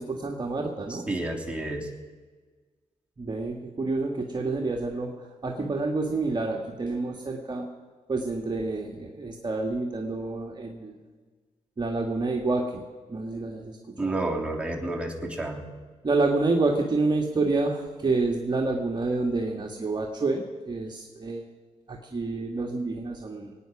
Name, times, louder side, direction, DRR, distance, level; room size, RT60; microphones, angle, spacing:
voice 1, 0.0-1.0 3.2-7.7 8.1-11.0 11.8-12.8 13.1-14.2 16.0-21.5 21.9-23.5, right 3 dB, 35° right, 1 dB, 1.7 m, -28 dB
voice 2, 0.9-1.9 14.0-15.6, right 2 dB, 10° right, 0 dB, 3.1 m, -30 dB
22.5 x 9.6 x 5.9 m, 1.4 s
cardioid pair, 75°, 13 cm